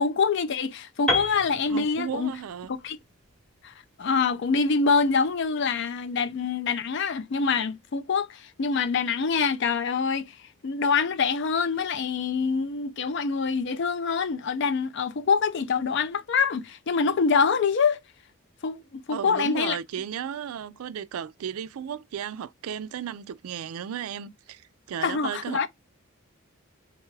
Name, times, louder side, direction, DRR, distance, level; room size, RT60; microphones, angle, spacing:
voice 1, 0.0-2.3 2.8-3.0 3.6-3.7 4.0-10.4 10.6-18.0 18.6-19.8 25.0-25.7, left 5 dB, 55° left, 0.4 m, -25 dB
Piano, 1.1-5.0, left 2 dB, ahead, 0.8 m, -32 dB
voice 2, 1.7-2.7 19.1-25.7, right 8 dB, 80° right, 0.3 m, -34 dB
3.5 x 2.3 x 3.1 m
head